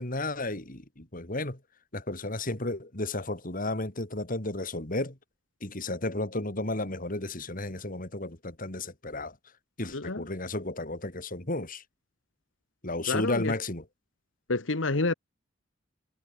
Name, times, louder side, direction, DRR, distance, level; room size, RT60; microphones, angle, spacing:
voice 1, 0.0-1.6 1.9-5.2 5.6-9.4 9.8-11.8 12.8-13.9, left 2 dB, 45° left, 4.0 m, -33 dB
voice 2, 9.9-10.2 13.1-13.5 14.5-15.1, left 2 dB, 90° left, 1.7 m, -28 dB
head